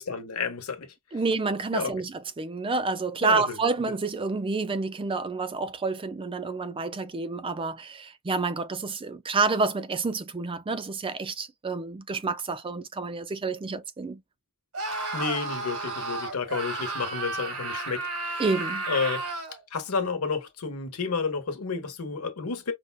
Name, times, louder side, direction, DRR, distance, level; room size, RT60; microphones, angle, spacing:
voice 1, 0.0-0.9 1.7-1.9 3.2-3.6 15.1-18.4 18.9-19.2 19.7-22.7, left 5 dB, 85° left, 1.0 m, -31 dB
voice 2, 1.1-14.2 18.4-18.8, right 4 dB, 25° right, 0.4 m, -29 dB
Screaming, 14.7-19.6, right 3 dB, 75° right, 1.4 m, -32 dB
5.0 x 2.3 x 2.3 m
head